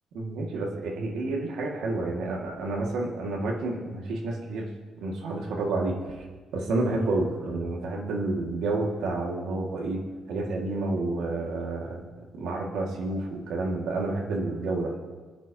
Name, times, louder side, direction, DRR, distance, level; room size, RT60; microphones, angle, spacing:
voice 1, 0.1-4.7 5.0-6.2 6.5-10.0 10.3-12.0 12.3-14.9, right 2 dB, 80° right, 0 dB, 2.3 m, -29 dB
24.5 x 10.0 x 3.0 m, 1.4 s
cardioid pair, 90°, 0 cm